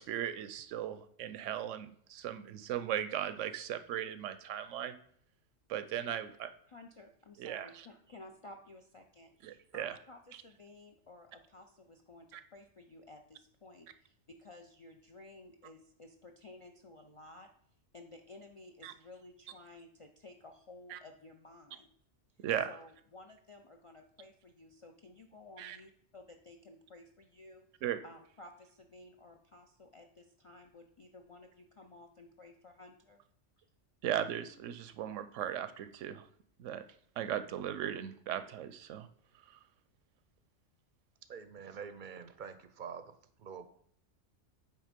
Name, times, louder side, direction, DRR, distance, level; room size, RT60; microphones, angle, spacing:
voice 1, 0.0-4.9 5.7-6.5 7.4-7.9 9.4-10.0 12.3-12.4 18.8-18.9 20.9-21.0 22.4-22.7 25.6-25.8 27.8-28.0 34.0-36.3 36.6-36.8 37.2-39.1 39.5-39.6, right 10 dB, 85° right, 11 dB, 0.9 m, -37 dB
voice 2, 6.7-17.5 17.9-21.9 22.7-27.7 28.0-33.2 33.6-33.7, left 2 dB, 50° left, 4 dB, 0.3 m, -55 dB
voice 3, 41.3-43.1 43.4-43.7, right 6 dB, 55° right, 10 dB, 0.6 m, -46 dB
8.5 x 3.5 x 5.1 m, 0.62 s
omnidirectional pair, 1.2 m